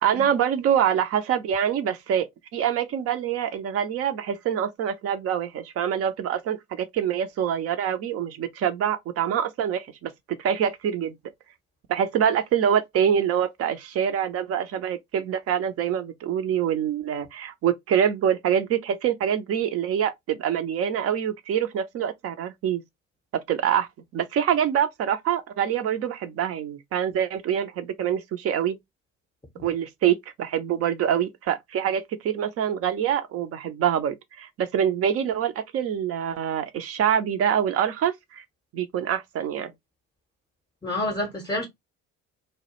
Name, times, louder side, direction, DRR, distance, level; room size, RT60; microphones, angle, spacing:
voice 1, 0.0-2.3 2.5-10.1 10.4-11.1 11.9-22.8 23.5-28.8 29.6-38.4 38.7-39.7, right 9 dB, 40° right, 0.4 m, -25 dB
voice 2, 40.8-41.7, left 1 dB, 10° left, 0.7 m, -29 dB
2.2 x 2.0 x 2.8 m
figure-of-eight pair, 55°, 39 cm